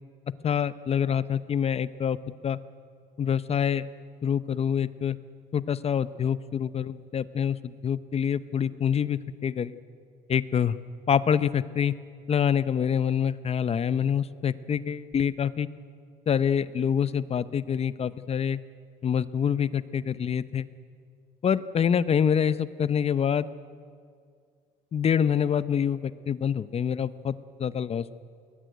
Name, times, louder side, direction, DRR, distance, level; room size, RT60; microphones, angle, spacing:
voice 1, 0.4-2.2 2.4-2.6 3.2-3.9 4.2-5.2 5.5-9.7 10.3-10.8 11.1-11.9 12.3-15.7 16.3-18.6 19.0-20.7 21.4-23.5 24.9-28.1, left 8 dB, 35° left, 16 dB, 0.7 m, -26 dB
20.5 x 20.5 x 9.2 m, 2.2 s
cardioid pair, 110°, 17 cm